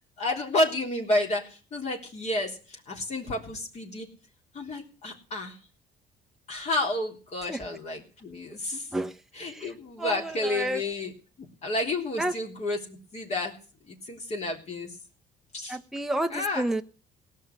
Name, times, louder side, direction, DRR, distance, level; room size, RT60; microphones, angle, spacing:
voice 1, 0.2-4.1 4.5-5.6 6.5-8.9 9.3-11.1 11.6-13.5 13.9-14.9 15.5-15.8 16.3-16.7, left 1 dB, 40° left, 0 dB, 3.6 m, -30 dB
voice 2, 10.0-10.8 12.2-12.3 15.7-16.8, right 1 dB, ahead, 5 dB, 0.8 m, -30 dB
17.5 x 6.6 x 9.3 m, 0.38 s
cardioid pair, 110°, 17 cm